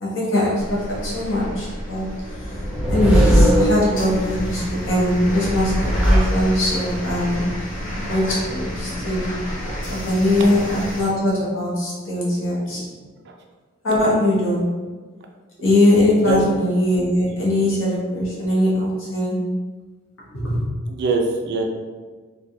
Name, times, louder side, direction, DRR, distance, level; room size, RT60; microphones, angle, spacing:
voice 1, 0.0-2.1 2.9-7.5 7.9-9.3 9.9-12.9 13.8-14.7 15.6-19.5 20.3-20.6, left 1 dB, 60° left, -6 dB, 1.0 m, -21 dB
sound 1, 0.6-11.0, equal, 40° left, 0.6 m, -30 dB
sound 2, 2.4-4.4 5.4-6.9, equal, 5° right, 0.6 m, -19 dB
voice 2, 12.7-13.4 16.2-16.4 17.5-17.7 20.9-21.6, right 3 dB, 50° right, 2 dB, 0.4 m, -24 dB
3.2 x 2.3 x 2.6 m, 1.4 s
head